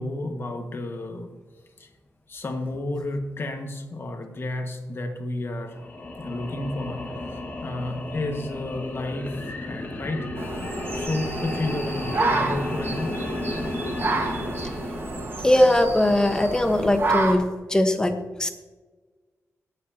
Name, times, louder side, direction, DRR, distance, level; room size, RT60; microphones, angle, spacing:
voice 1, 0.0-1.3 1.8-1.9 2.3-5.8 6.2-10.3 10.9-13.3, left 2 dB, 45° left, 4 dB, 1.6 m, -31 dB
sound 1, 5.7-16.0, left 2 dB, 30° left, 1.9 m, -34 dB
sound 2, 10.4-17.4, right 3 dB, 45° right, 1.5 m, -29 dB
voice 2, 15.4-18.5, left 1 dB, 15° left, 6 dB, 1.2 m, -20 dB
22.5 x 7.8 x 2.9 m, 1.3 s
wide cardioid pair, 110°, 5 cm